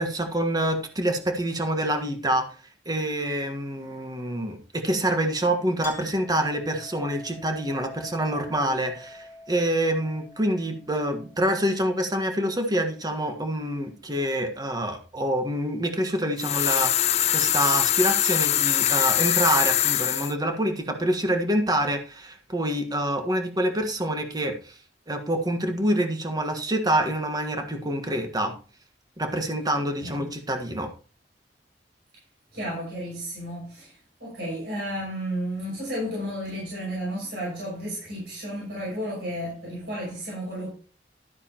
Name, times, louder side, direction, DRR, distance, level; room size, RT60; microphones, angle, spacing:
voice 1, 0.0-2.5 2.8-24.7 25.1-28.5 29.2-30.9, right 1 dB, 20° right, 1.5 m, -26 dB
Chink clink, 5.8-12.9, left 2 dB, 15° left, 3.4 m, -47 dB
sound 1, 16.4-20.3, left 11 dB, 40° left, 0.4 m, -23 dB
voice 2, 30.0-30.3 32.5-40.7, equal, 65° right, 6.1 m, -33 dB
12.5 x 9.4 x 3.0 m
head